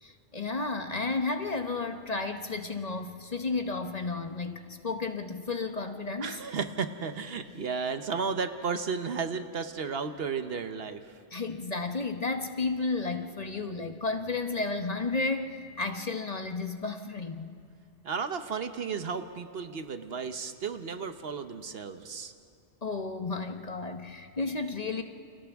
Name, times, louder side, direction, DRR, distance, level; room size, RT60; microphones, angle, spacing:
voice 1, 0.0-6.4 11.3-17.5 22.8-25.0, left 3 dB, 40° left, 6 dB, 0.9 m, -32 dB
voice 2, 6.2-11.0 18.0-22.3, right 5 dB, 60° right, 9 dB, 1.1 m, -33 dB
29.5 x 28.0 x 3.5 m, 2.4 s
omnidirectional pair, 1.2 m